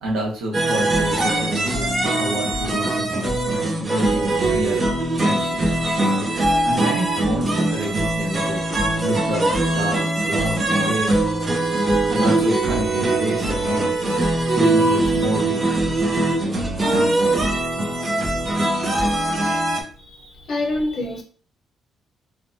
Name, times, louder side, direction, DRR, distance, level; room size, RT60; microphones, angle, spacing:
voice 1, 0.0-3.3 3.8-4.8 5.2-5.7 6.6-8.6 9.0-9.5 9.7-13.8 14.5-16.0, equal, 90° right, -2 dB, 1.0 m, -28 dB
sound 1, 0.5-19.8, right 2 dB, 35° right, 0.7 m, -21 dB
voice 2, 20.0-21.2, left 2 dB, 60° left, 2 dB, 0.7 m, -26 dB
3.3 x 2.2 x 2.6 m, 0.43 s
cardioid pair, 90°, 0 cm